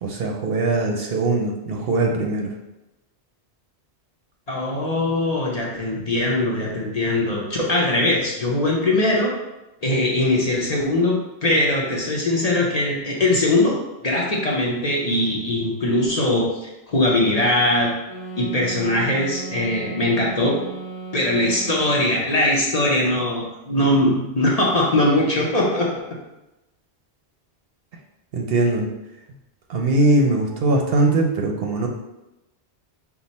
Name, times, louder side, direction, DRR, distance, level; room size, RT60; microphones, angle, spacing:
voice 1, 0.0-2.5 28.3-28.9 29.7-31.9, right 2 dB, 65° right, 1 dB, 0.8 m, -21 dB
voice 2, 4.5-9.3 9.8-13.7 14.0-17.9 18.4-20.6 21.1-25.9, left 1 dB, 40° left, -3 dB, 0.8 m, -21 dB
sound 1, 18.0-22.2, right 4 dB, 25° left, 1.5 m, -35 dB
6.0 x 2.1 x 4.0 m, 0.96 s
omnidirectional pair, 1.1 m